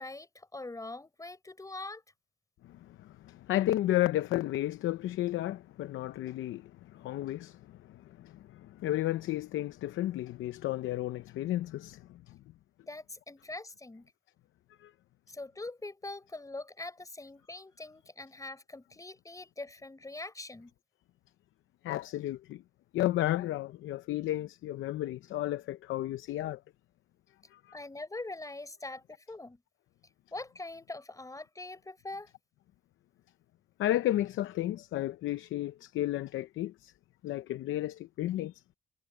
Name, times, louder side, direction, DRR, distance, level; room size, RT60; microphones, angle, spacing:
voice 1, 0.0-2.0 12.8-14.1 15.3-20.7 27.7-29.6 30.3-32.3, left 2 dB, 15° left, 4.7 m, -43 dB
voice 2, 2.6-7.6 7.9-12.3 14.8-14.9 21.8-22.6 22.9-26.6 27.5-27.6 33.8-36.9 37.2-38.5, left 14 dB, 80° left, 0.7 m, -33 dB
cardioid pair, 90°, 20 cm